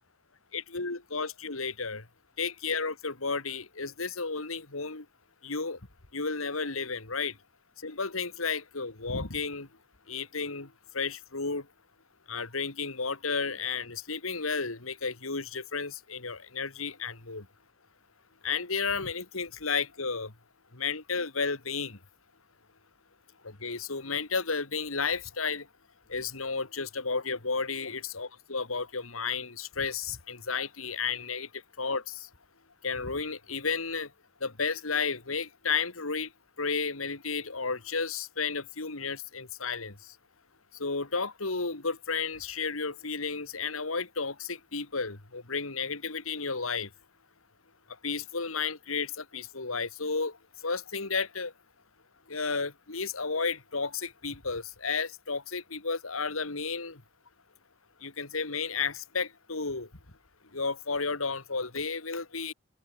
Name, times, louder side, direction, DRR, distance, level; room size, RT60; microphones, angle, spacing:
voice 1, 0.5-2.1 2.4-5.1 5.4-5.8 6.1-7.4 7.8-9.7 10.1-11.7 12.3-17.5 18.4-20.3 20.7-22.0 23.4-25.7 26.1-32.3 32.8-34.1 34.4-36.3 36.6-40.2 40.7-46.9 48.0-50.4 50.6-51.5 52.3-57.0 58.0-59.9 60.5-62.5, left 5 dB, 90° left, 2.4 m, -32 dB
open air
head